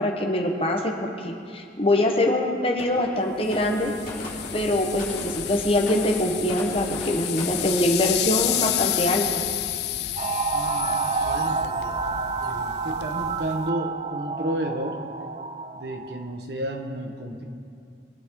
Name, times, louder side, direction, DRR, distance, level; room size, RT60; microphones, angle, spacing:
voice 1, 0.0-3.9 4.5-9.3, left 1 dB, 35° left, 2 dB, 1.2 m, -24 dB
sound 1, 2.3-2.5 2.8-7.8, left 1 dB, 50° left, 3.5 m, -38 dB
sound 2, 3.4-13.7, left 13 dB, 65° left, 0.4 m, -31 dB
sound 3, 10.2-16.3, right 4 dB, 35° right, 0.3 m, -29 dB
voice 2, 10.5-12.0 12.4-15.0 15.7-17.4, right 1 dB, 65° right, 3 dB, 1.3 m, -32 dB
22.5 x 9.4 x 3.8 m, 2.4 s
head